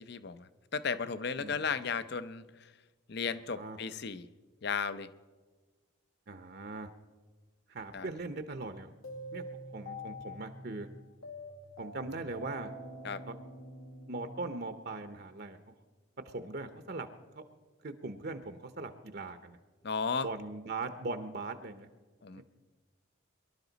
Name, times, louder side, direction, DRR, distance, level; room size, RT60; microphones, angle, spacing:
voice 1, 0.0-2.7 3.1-4.3 4.6-5.1 7.9-8.1 13.0-13.2 19.8-20.3 22.2-22.4, left 5 dB, 50° left, 14 dB, 0.6 m, -35 dB
voice 2, 6.3-6.9 7.7-8.9 9.3-9.4 9.7-10.9 11.8-12.7 13.3-13.4 14.1-15.6 16.3-17.1 17.3-17.4 17.8-19.6 20.2-21.9 22.4-22.5, right 3 dB, 50° right, 9 dB, 0.7 m, -40 dB
sound 1, 9.0-15.2, equal, 85° left, 2.0 m, -46 dB
23.5 x 12.0 x 4.0 m, 1.3 s
head